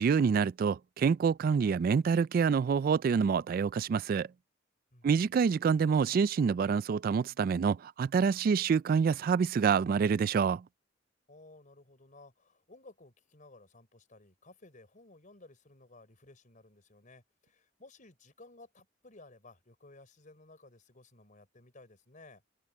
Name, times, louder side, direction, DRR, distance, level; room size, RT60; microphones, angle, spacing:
voice 1, 0.0-4.3 5.0-10.6, right 6 dB, 50° right, 0.3 m, -27 dB
voice 2, 4.9-5.3 11.3-22.5, left 2 dB, 45° left, 4.9 m, -56 dB
head